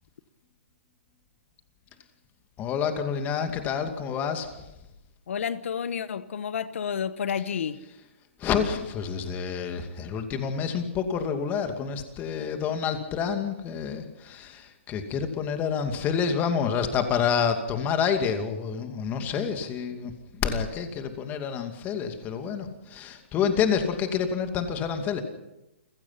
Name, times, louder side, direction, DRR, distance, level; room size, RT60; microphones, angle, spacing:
voice 1, 2.6-4.7 8.4-25.2, left 7 dB, 25° left, 6 dB, 2.5 m, -28 dB
voice 2, 5.3-7.8, left 7 dB, 70° left, 14 dB, 1.2 m, -30 dB
29.0 x 16.0 x 5.9 m, 0.94 s
hypercardioid pair, 140°, 7 cm